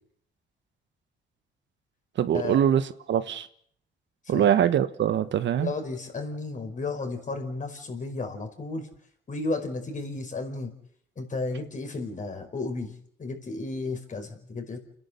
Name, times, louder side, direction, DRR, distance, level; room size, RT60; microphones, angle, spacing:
voice 1, 2.2-3.5 4.3-5.7, right 9 dB, 65° right, 1.3 m, -23 dB
voice 2, 5.5-8.9 9.3-10.7 11.2-12.9 13.2-14.8, left 3 dB, 40° left, 5.1 m, -33 dB
29.5 x 11.0 x 8.2 m
cardioid pair, 90°, 20 cm